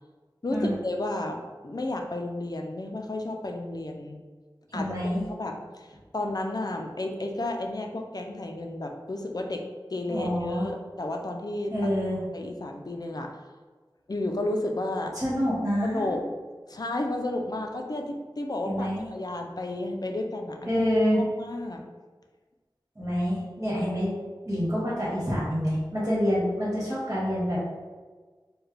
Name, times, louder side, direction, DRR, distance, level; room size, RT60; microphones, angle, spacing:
voice 1, 0.4-4.2 4.7-11.9 12.3-13.4 14.1-15.2 15.8-16.2 16.7-20.8 21.4-21.8, left 2 dB, 50° left, 3 dB, 0.5 m, -32 dB
voice 2, 4.7-5.2 10.1-10.7 11.7-12.2 15.1-16.1 18.6-19.1 20.6-21.2 22.9-24.2 24.4-27.6, equal, 30° right, -8 dB, 1.5 m, -27 dB
4.6 x 2.2 x 3.3 m, 1.4 s
wide cardioid pair, 50°, 8 cm